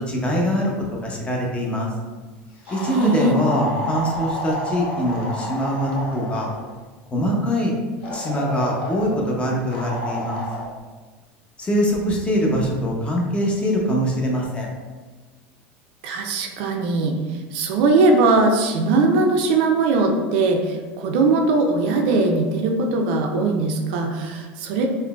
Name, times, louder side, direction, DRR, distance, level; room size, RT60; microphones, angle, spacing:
voice 1, 0.1-0.7 1.0-1.9 2.7-6.5 7.1-7.7 8.1-10.4 11.6-14.7, equal, 20° left, -2 dB, 0.7 m, -23 dB
sound 1, 2.7-6.6 8.0-9.2 9.7-10.7, left 1 dB, 85° left, 0.7 m, -30 dB
voice 2, 2.8-3.4 16.0-17.2 17.5-24.9, right 3 dB, 70° right, 2 dB, 0.4 m, -20 dB
3.7 x 2.1 x 2.3 m, 1.3 s
supercardioid pair, 100°, 6 cm